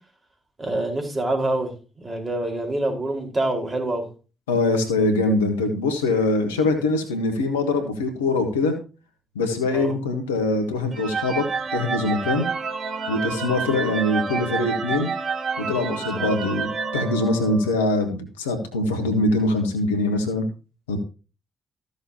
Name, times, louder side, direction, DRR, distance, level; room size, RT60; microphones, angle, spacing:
voice 1, 0.6-1.7 2.0-4.1 9.7-9.9 16.1-16.3, right 1 dB, 30° right, 3 dB, 4.5 m, -26 dB
voice 2, 4.5-8.7 9.3-11.4 11.7-12.5 13.1-15.1 15.6-20.5 20.9-21.0, left 2 dB, 90° left, 7 dB, 1.3 m, -23 dB
sound 1, 10.9-17.9, right 5 dB, 50° right, 1.7 m, -29 dB
14.5 x 6.8 x 2.8 m, 0.33 s
hypercardioid pair, 40°, 0 cm